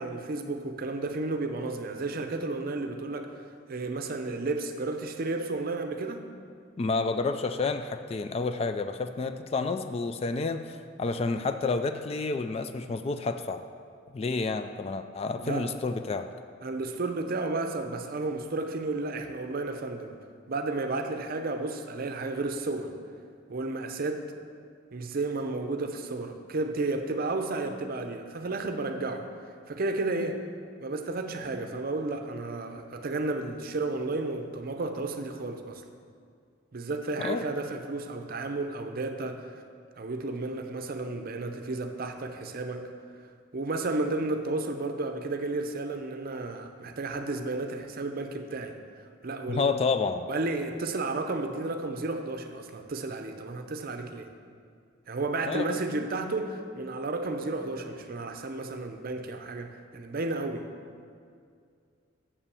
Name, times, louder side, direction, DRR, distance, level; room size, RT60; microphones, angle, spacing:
voice 1, 0.0-6.2 15.4-15.7 16.6-20.1 20.5-22.9 23.5-24.3 24.9-29.3 29.7-30.4 30.8-35.8 36.7-39.5 40.0-42.9 43.5-49.7 50.3-54.3 55.1-60.6, right 2 dB, 50° right, 6 dB, 0.6 m, -32 dB
voice 2, 6.8-13.6 14.1-16.3 37.2-37.5 49.5-50.3 55.4-55.7, left 4 dB, 30° left, 9 dB, 0.3 m, -30 dB
6.8 x 5.6 x 6.9 m, 2.2 s
head